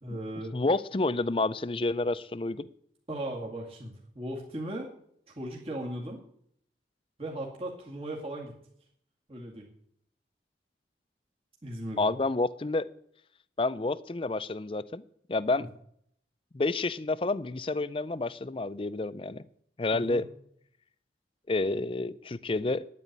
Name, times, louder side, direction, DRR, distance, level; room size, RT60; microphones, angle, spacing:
voice 1, 0.0-0.5 3.1-4.9 5.4-6.2 7.2-8.6 9.3-9.7 11.6-12.1 19.9-20.2, right 1 dB, 35° right, -3 dB, 2.2 m, -37 dB
voice 2, 0.5-2.7 12.0-12.9 13.6-15.0 15.3-15.7 16.5-19.4 19.8-20.3 21.5-22.9, left 2 dB, 30° left, 16 dB, 0.5 m, -29 dB
9.9 x 9.1 x 8.6 m, 0.68 s
head